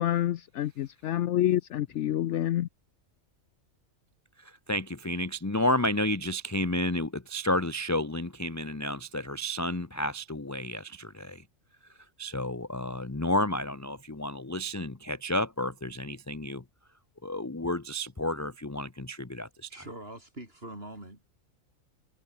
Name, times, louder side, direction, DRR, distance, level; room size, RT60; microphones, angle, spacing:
voice 1, 0.0-2.7, left 12 dB, 65° left, 0.8 m, -28 dB
voice 2, 4.7-11.4 12.2-16.6 17.2-19.7, left 1 dB, 15° left, 0.7 m, -31 dB
voice 3, 19.7-21.3, right 1 dB, 45° right, 6.8 m, -43 dB
omnidirectional pair, 1.4 m